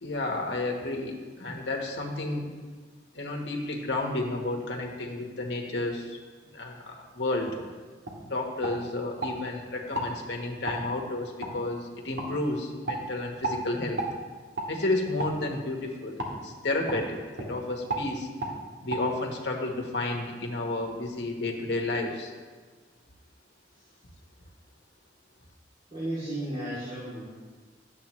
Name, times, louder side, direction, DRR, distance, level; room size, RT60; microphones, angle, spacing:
voice 1, 0.0-2.4 3.1-6.2 6.5-7.5 8.2-14.0 14.7-17.2 17.5-18.3 18.8-22.3, left 2 dB, 75° left, 1 dB, 1.2 m, -31 dB
sound 1, 7.5-7.6 8.0-8.2 8.6-9.3 9.9-10.1 10.7-10.8 11.4-11.5 12.2-12.3 12.8-13.0 13.4-13.6 14.0-14.1 14.5-14.7 15.2-15.4 16.2-16.3 16.9-17.0 17.3-17.5 17.9-18.1 18.4-18.5 18.9-19.0, right 2 dB, 85° right, 1.5 m, -32 dB
voice 2, 25.9-27.2, right 1 dB, 35° right, -11 dB, 2.5 m, -34 dB
11.0 x 8.2 x 3.1 m, 1.4 s
head